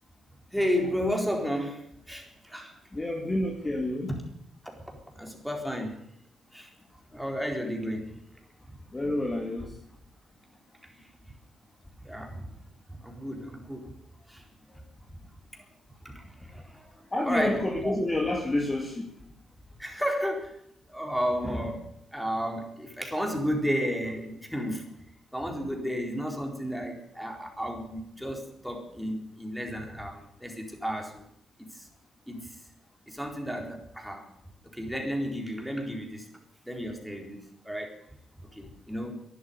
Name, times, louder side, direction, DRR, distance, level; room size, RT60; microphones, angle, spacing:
voice 1, 0.5-2.8 4.1-4.2 4.6-6.0 6.5-6.7 7.1-8.2 10.8-11.1 12.0-12.5 12.9-14.0 14.3-14.8 15.5-15.6 16.0-17.0 17.2-18.0 19.8-20.6 20.9-24.8 25.3-31.2 31.6-31.9 32.3-32.6 33.1-34.3 34.6-36.3 36.7-38.0 38.4-39.2, equal, ahead, 2 dB, 4.2 m, -33 dB
voice 2, 2.9-4.1 8.9-9.7 17.1-19.1, left 1 dB, 25° left, 2 dB, 2.3 m, -29 dB
12.0 x 11.0 x 9.7 m, 0.74 s
cardioid pair, 70°, 0 cm